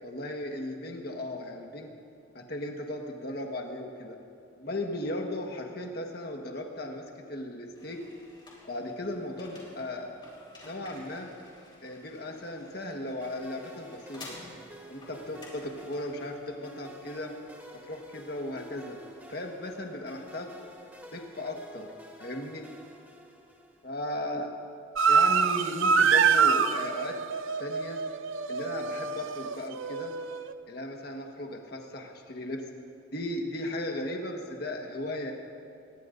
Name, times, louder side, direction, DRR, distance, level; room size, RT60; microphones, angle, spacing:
voice 1, 0.0-1.9 2.3-4.2 4.6-8.0 8.7-10.1 10.6-11.3 11.8-14.4 14.9-17.3 17.9-19.0 19.3-20.5 21.1-21.9 22.2-22.7 23.8-24.5 25.1-27.2 27.6-28.0 28.5-30.1 30.7-32.6 33.1-35.3, left 1 dB, 50° left, 2 dB, 1.4 m, -36 dB
sound 1, 7.7-21.3, left 2 dB, 25° left, 3.6 m, -53 dB
sound 2, 13.2-23.9, equal, 10° right, 1.2 m, -51 dB
sound 3, 25.0-30.5, right 6 dB, 80° right, 0.6 m, -25 dB
24.5 x 20.0 x 2.6 m, 2.5 s
head